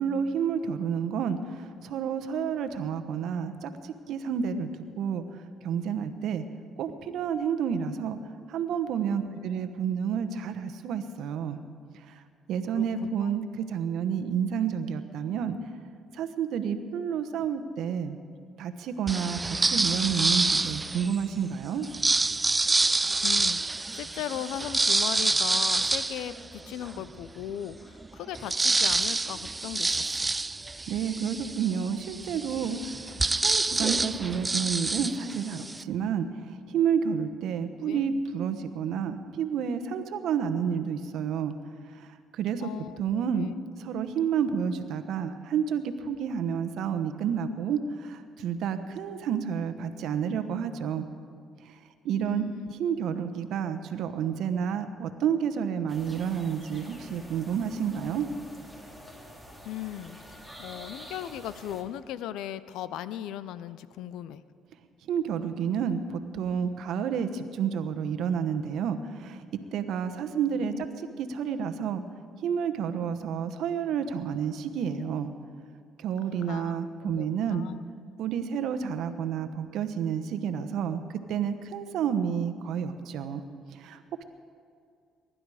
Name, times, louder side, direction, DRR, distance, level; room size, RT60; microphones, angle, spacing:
voice 1, 0.0-5.2 5.6-6.4 6.8-8.2 8.5-11.6 12.1-12.2 12.5-15.6 16.1-18.2 18.6-21.9 30.9-41.5 41.9-42.7 43.0-43.5 43.8-51.1 51.6-51.8 52.0-52.5 52.8-58.3 65.1-69.4 69.7-72.0 72.4-75.3 76.0-77.7 78.2-81.0 81.3-83.4 83.7-84.2, right 7 dB, 75° right, 9 dB, 1.1 m, -30 dB
sound 1, 19.1-21.2 21.8-27.0 27.5-27.6 27.8-35.8, right 3 dB, 20° right, 0.4 m, -27 dB
voice 2, 23.2-30.3 37.8-38.2 42.6-43.0 43.3-43.5 52.2-52.7 59.6-60.2 60.6-64.4 70.6-70.9 76.4-77.8, left 11 dB, 80° left, 15 dB, 0.6 m, -38 dB
sound 2, 55.9-61.8, equal, 10° left, 3.1 m, -47 dB
22.5 x 11.5 x 4.9 m, 2.3 s
cardioid pair, 80°, 0 cm